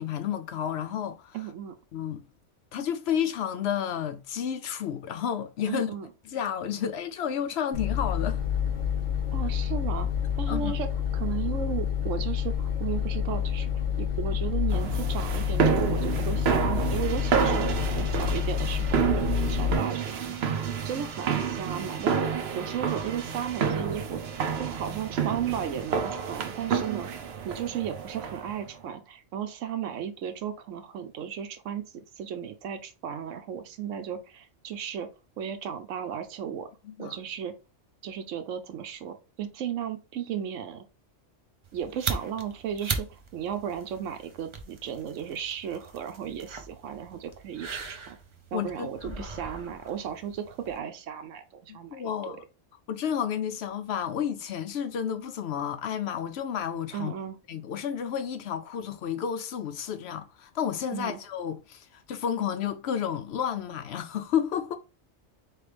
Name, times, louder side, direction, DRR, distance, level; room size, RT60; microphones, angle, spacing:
voice 1, 0.0-1.4 1.9-2.2 2.7-5.9 6.3-8.4 10.5-10.7 36.8-37.2 48.5-49.4 51.7-52.4 52.9-57.1 57.5-64.8, left 8 dB, 65° left, 0.7 m, -31 dB
voice 2, 1.3-1.8 5.7-6.1 9.3-10.1 10.4-10.9 11.1-13.7 14.0-20.4 20.8-22.3 22.5-24.2 24.6-27.1 27.4-35.1 35.4-36.7 37.0-37.5 38.0-40.8 41.7-48.2 48.5-52.4 56.9-57.4 60.9-61.2, right 8 dB, 90° right, 1.0 m, -35 dB
sound 1, 7.7-19.8, left 8 dB, 50° left, 1.5 m, -28 dB
sound 2, 14.7-28.6, right 7 dB, 60° right, 0.9 m, -29 dB
sound 3, 41.6-50.8, right 4 dB, 40° right, 0.4 m, -39 dB
4.5 x 3.2 x 3.3 m
omnidirectional pair, 1.3 m